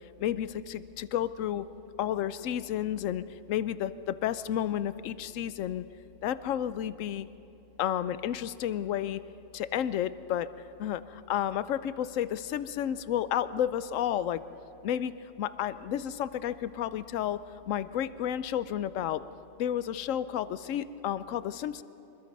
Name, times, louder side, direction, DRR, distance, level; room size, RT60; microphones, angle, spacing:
voice 1, 0.2-1.7 2.0-5.9 6.2-7.3 7.8-9.2 9.5-10.5 10.8-14.4 14.8-17.4 17.7-19.2 19.6-21.8, left 10 dB, 80° left, 15 dB, 1.0 m, -31 dB
25.5 x 21.0 x 5.4 m, 2.8 s
omnidirectional pair, 1.3 m